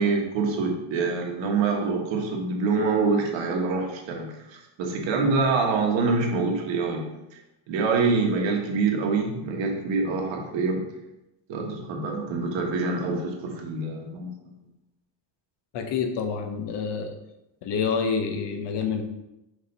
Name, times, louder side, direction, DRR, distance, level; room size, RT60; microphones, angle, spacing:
voice 1, 0.0-7.1 7.7-10.8 11.5-14.3, right 4 dB, 70° right, 1 dB, 1.4 m, -25 dB
voice 2, 15.7-17.2 17.6-19.0, left 6 dB, 60° left, 5 dB, 0.9 m, -27 dB
6.5 x 2.8 x 5.4 m, 0.92 s
cardioid pair, 140°, 46 cm